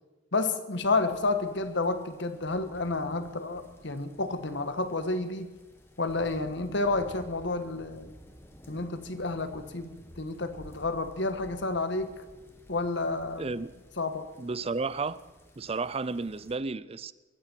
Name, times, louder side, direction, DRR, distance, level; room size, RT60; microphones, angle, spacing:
voice 1, 0.3-5.5 6.0-8.1 8.7-12.2 12.7-13.6 14.0-14.3, left 3 dB, 65° left, 1.4 m, -30 dB
sound 1, 0.8-16.6, equal, 15° left, 1.8 m, -53 dB
voice 2, 13.4-13.7 14.4-15.2 15.6-17.1, right 3 dB, 30° right, 0.5 m, -32 dB
22.0 x 14.5 x 4.5 m
head